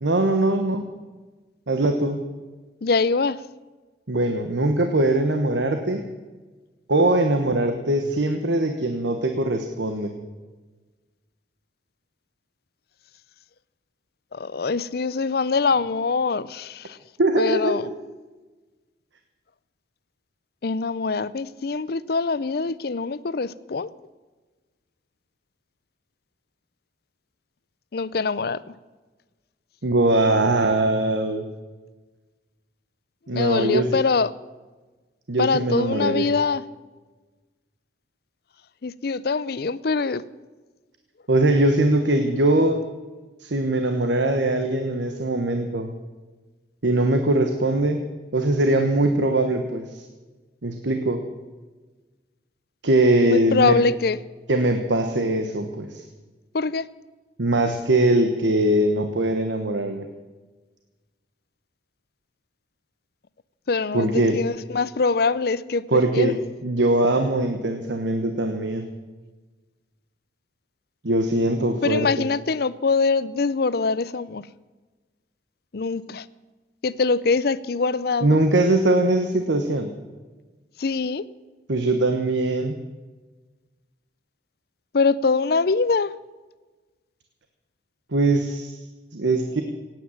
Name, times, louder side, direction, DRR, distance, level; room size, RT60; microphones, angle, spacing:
voice 1, 0.0-0.8 1.7-2.2 4.1-6.0 6.9-10.1 17.2-17.8 29.8-31.4 33.3-33.9 35.3-36.3 41.3-42.8 43.4-45.9 46.8-48.0 48.3-50.0 50.6-51.2 52.8-53.7 54.5-56.0 57.4-60.1 63.9-64.4 65.9-66.3 66.6-68.8 71.0-72.1 78.2-79.9 81.7-82.8 88.1-88.8 89.1-89.6, right 2 dB, 80° right, 6 dB, 1.2 m, -21 dB
voice 2, 2.8-3.4 14.3-17.0 17.4-17.9 20.6-23.9 27.9-28.7 33.3-34.3 35.4-36.6 38.8-40.2 53.2-54.2 56.5-56.9 63.7-65.8 66.1-66.3 71.8-74.5 75.7-76.3 76.8-78.4 80.8-81.2 84.9-86.1, left 4 dB, 55° left, 18 dB, 0.5 m, -23 dB
17.5 x 9.3 x 7.1 m, 1.3 s
head